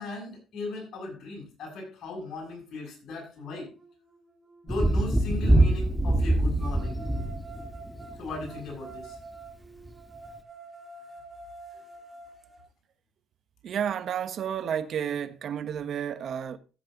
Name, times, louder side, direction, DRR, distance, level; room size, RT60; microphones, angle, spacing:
voice 1, 0.0-3.7 4.6-7.0 8.2-9.2, left 3 dB, 60° left, 7.4 m, -37 dB
sound 1, 2.8-2.9 3.4-5.3 6.6-12.6, right 3 dB, 20° right, 2.9 m, -47 dB
Thunder, 4.7-8.6 9.9-10.0, right 1 dB, ahead, 1.7 m, -24 dB
voice 2, 13.6-16.6, right 8 dB, 60° right, 1.1 m, -31 dB
14.5 x 7.8 x 3.9 m
cardioid pair, 90°, 0 cm